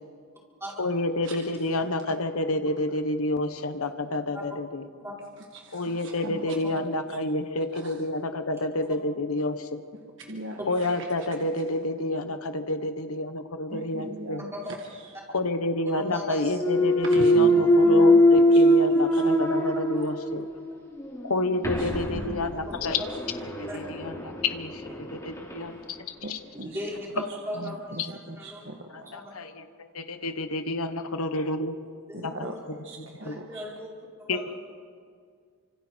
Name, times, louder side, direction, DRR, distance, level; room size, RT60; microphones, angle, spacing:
voice 1, 0.8-4.8 5.7-9.8 10.7-14.4 15.3-20.5 21.2-23.0 23.6-26.0 26.3-26.4 28.9-31.8 32.2-32.5 33.0-33.4 34.3-34.5, left 2 dB, 80° left, 8 dB, 1.3 m, -29 dB
voice 2, 1.7-2.1 5.4-6.5 7.7-7.9 10.2-11.1 13.7-14.5 14.9-15.1 17.0-18.2 18.5-18.6 19.1-19.2 21.6-22.4 26.2-26.8 27.1-29.2 32.1-33.6, right 1 dB, 55° right, 2 dB, 1.5 m, -40 dB
voice 3, 15.9-16.5 19.9-20.0 22.4-22.5 23.7-23.8 26.6-28.6 29.1-29.3 32.1-32.6 33.2-33.9 34.2-34.5, equal, 10° right, -4 dB, 5.1 m, -37 dB
Thump thud, 16.5-20.5 21.0-25.6, equal, 15° left, 3.0 m, -22 dB
29.5 x 26.0 x 4.6 m, 2.1 s
head